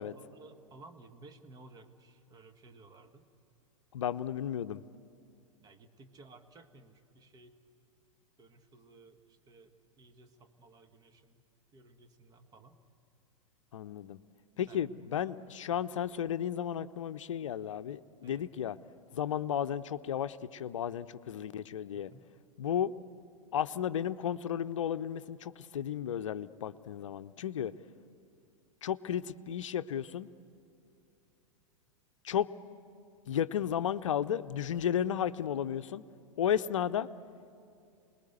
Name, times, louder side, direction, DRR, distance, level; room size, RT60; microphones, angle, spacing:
voice 1, 0.0-3.3 5.6-7.6 8.4-11.4 11.7-12.8 14.7-14.8 18.2-18.4 21.9-22.3, right 3 dB, 20° right, 7 dB, 1.6 m, -56 dB
voice 2, 3.9-4.8 13.7-14.2 14.6-18.8 19.1-22.1 22.6-22.9 23.5-27.7 28.8-30.3 32.2-32.5 33.3-36.0 36.4-37.1, left 9 dB, 65° left, 13 dB, 0.7 m, -33 dB
28.5 x 20.5 x 8.1 m, 2.5 s
figure-of-eight pair, 95°, 17 cm